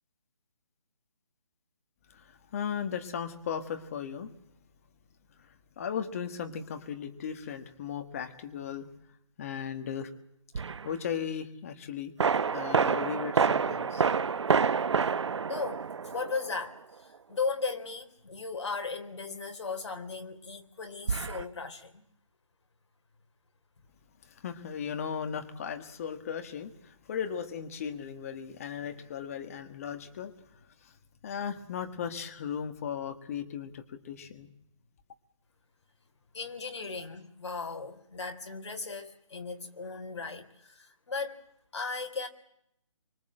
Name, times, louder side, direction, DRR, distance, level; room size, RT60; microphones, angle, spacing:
voice 1, 2.1-4.3 5.4-8.9 9.4-10.1 10.5-12.1 12.5-14.1 24.2-30.3 30.8-30.9 31.2-34.5, left 7 dB, 25° left, 1.7 m, -37 dB
sound 1, 10.6-10.9 12.2-16.6 21.1-21.4, right 6 dB, 60° right, 1.0 m, -28 dB
voice 2, 15.5-22.0 36.3-41.4 41.7-42.3, left 4 dB, 60° left, 3.5 m, -37 dB
24.5 x 24.0 x 7.8 m
hypercardioid pair, 165°, 17 cm